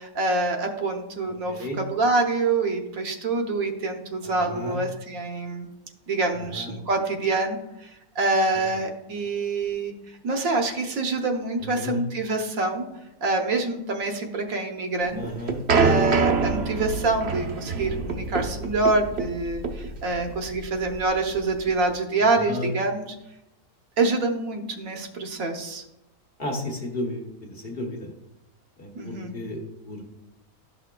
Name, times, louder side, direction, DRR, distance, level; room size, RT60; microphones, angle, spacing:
voice 1, 0.0-5.7 6.1-9.9 10.2-12.9 13.2-15.2 15.7-23.1 24.0-25.8 28.9-29.3, right 3 dB, 70° right, 3 dB, 1.3 m, -26 dB
voice 2, 1.5-1.8 4.2-4.8 6.3-6.7 8.5-8.6 11.6-12.0 15.1-15.6 22.2-22.7 26.4-28.1 28.8-30.0, left 1 dB, 45° left, 1 dB, 1.2 m, -34 dB
sound 1, 15.0-21.9, right 4 dB, 55° right, 0.9 m, -26 dB
11.5 x 5.7 x 2.2 m, 0.92 s
omnidirectional pair, 1.5 m